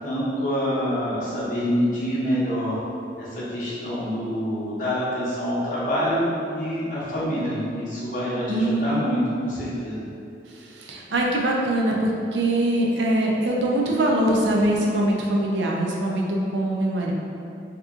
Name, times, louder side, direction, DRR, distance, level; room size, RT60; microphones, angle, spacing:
voice 1, 0.0-2.8 3.2-10.0, equal, 45° left, -8 dB, 0.9 m, -26 dB
voice 2, 8.5-9.0 10.5-17.1, right 1 dB, 85° right, -2 dB, 0.5 m, -23 dB
2.8 x 2.4 x 3.6 m, 2.5 s
head